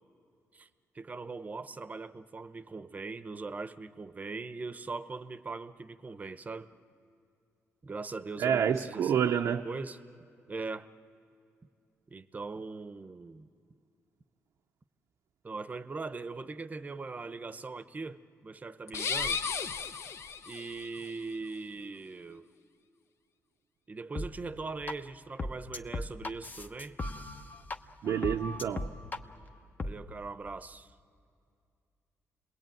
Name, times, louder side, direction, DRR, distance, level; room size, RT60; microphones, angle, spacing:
voice 1, 0.9-6.7 7.8-10.0 10.5-10.9 12.1-13.5 15.4-19.4 20.5-22.5 23.9-27.0 29.8-30.9, right 3 dB, 30° right, 0.8 m, -40 dB
voice 2, 8.4-9.6 28.0-28.9, right 8 dB, 70° right, 0.6 m, -28 dB
sound 1, 18.9-20.9, left 6 dB, 55° left, 0.8 m, -34 dB
sound 2, 24.1-24.3 24.9-25.0 25.4-27.8 28.1-29.2 29.8-29.9, left 2 dB, 30° left, 1.0 m, -37 dB
29.5 x 20.5 x 9.2 m
cardioid pair, 90°, 6 cm